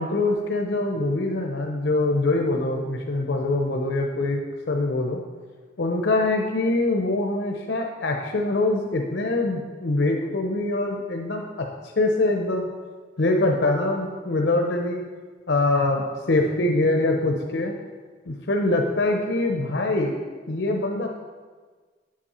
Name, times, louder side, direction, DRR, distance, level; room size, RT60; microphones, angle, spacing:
voice 1, 0.0-4.4 4.7-5.2 5.8-12.7 13.2-15.0 15.5-17.7 18.3-20.2 20.5-21.1, left 2 dB, 80° left, 2 dB, 0.7 m, -24 dB
9.4 x 7.4 x 4.3 m, 1.5 s
head